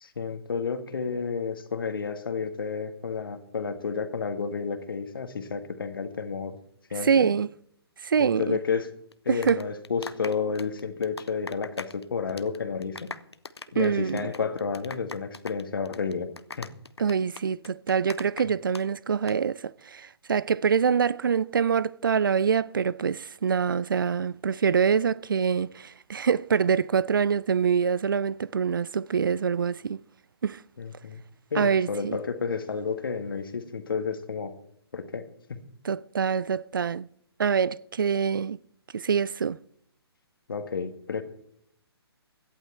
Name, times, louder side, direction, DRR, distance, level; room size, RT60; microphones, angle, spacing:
voice 1, 0.0-6.6 6.9-7.3 8.2-8.9 9.3-13.1 13.7-16.3 16.6-16.7 30.8-31.2 31.5-34.5 34.9-35.6 40.5-41.2, left 5 dB, 55° left, 1.8 m, -31 dB
voice 2, 7.0-7.5 8.0-8.6 9.3-9.7 13.8-14.3 17.0-30.0 30.4-30.6 31.5-32.2 35.8-37.1 37.4-38.6 38.9-39.6, right 6 dB, 55° right, 0.4 m, -25 dB
sound 1, 9.1-12.0 12.3-12.6 12.8-18.8 19.1-19.3, left 4 dB, 75° left, 0.8 m, -41 dB
17.0 x 11.5 x 4.4 m
figure-of-eight pair, 135°, 14 cm